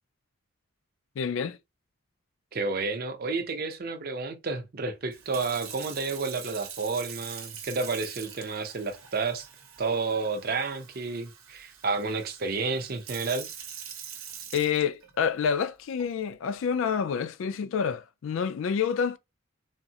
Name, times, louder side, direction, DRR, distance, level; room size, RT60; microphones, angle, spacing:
voice 1, 1.2-1.6 14.5-19.2, left 7 dB, 65° left, 0.3 m, -28 dB
voice 2, 2.5-9.5 9.8-13.5, right 4 dB, 45° right, 0.5 m, -31 dB
Sink (filling or washing) / Fill (with liquid), 5.1-15.3 16.0-16.3, right 8 dB, 75° right, 0.8 m, -44 dB
3.5 x 2.0 x 2.7 m
head